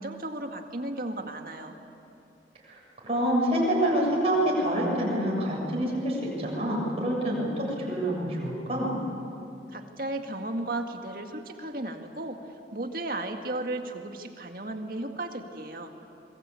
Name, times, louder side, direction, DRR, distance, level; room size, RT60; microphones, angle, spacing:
voice 1, 0.0-1.8 9.7-12.4 12.7-15.9, right 2 dB, 50° right, 4 dB, 2.0 m, -34 dB
voice 2, 3.0-9.0, right 1 dB, 35° right, -4 dB, 7.3 m, -27 dB
27.5 x 22.5 x 8.5 m, 2.7 s
head